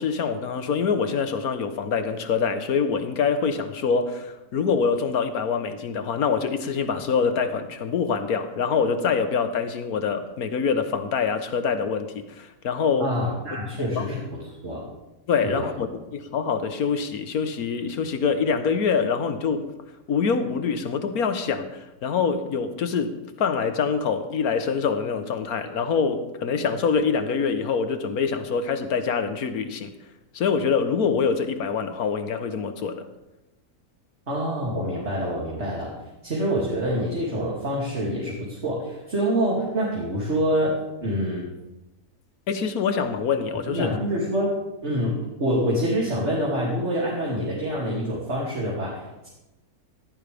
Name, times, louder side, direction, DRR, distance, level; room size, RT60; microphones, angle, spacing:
voice 1, 0.0-13.1 13.9-14.1 15.3-19.7 20.1-29.9 30.3-33.1 42.5-43.9, left 5 dB, 75° left, 9 dB, 1.6 m, -25 dB
voice 2, 13.0-14.2 14.6-14.8 15.4-15.7 34.3-35.9 36.2-40.7 41.0-41.4 43.7-44.5 44.8-49.3, equal, 45° right, -5 dB, 3.0 m, -26 dB
17.0 x 13.5 x 3.5 m, 0.99 s
omnidirectional pair, 1.6 m